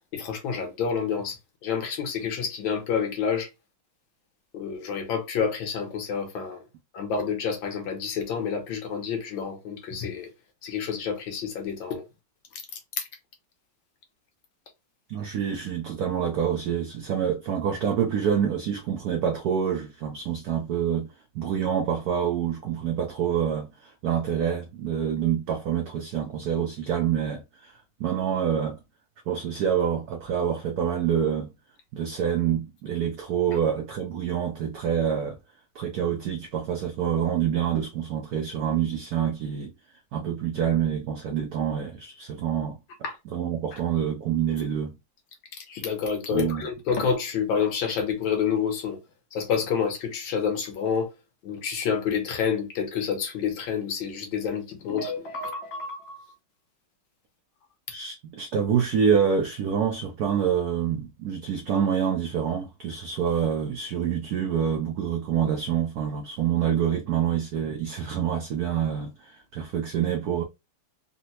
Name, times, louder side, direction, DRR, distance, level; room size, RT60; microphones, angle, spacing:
voice 1, 0.1-3.5 4.5-6.6 6.9-10.3 10.6-12.0 13.0-13.1 43.0-43.2 45.6-49.0 49.3-51.1 51.4-56.2, left 6 dB, 70° left, 1.6 m, -28 dB
voice 2, 15.1-27.7 28.0-28.8 29.3-31.5 31.9-35.4 35.7-39.7 40.1-42.8 43.3-45.0 46.3-46.7 57.9-70.4, right 8 dB, 85° right, 0.8 m, -27 dB
4.0 x 2.1 x 2.7 m
omnidirectional pair, 2.3 m